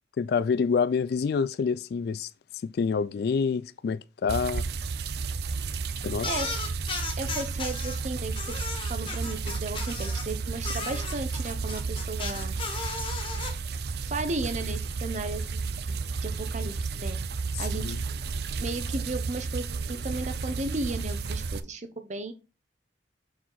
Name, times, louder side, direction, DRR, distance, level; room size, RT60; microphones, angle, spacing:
voice 1, 0.2-2.3 2.6-4.7 6.0-6.3 17.5-18.0, left 5 dB, 60° left, 0.3 m, -27 dB
sound 1, 4.3-21.6, right 4 dB, 65° right, 0.5 m, -32 dB
sound 2, 6.2-8.0 8.3-10.3 10.6-13.5, left 4 dB, 30° left, 1.6 m, -35 dB
voice 2, 7.2-8.3 8.9-12.5 14.0-17.2 17.6-17.8 18.6-22.3, right 2 dB, 40° right, 0.9 m, -35 dB
6.2 x 4.6 x 3.9 m
head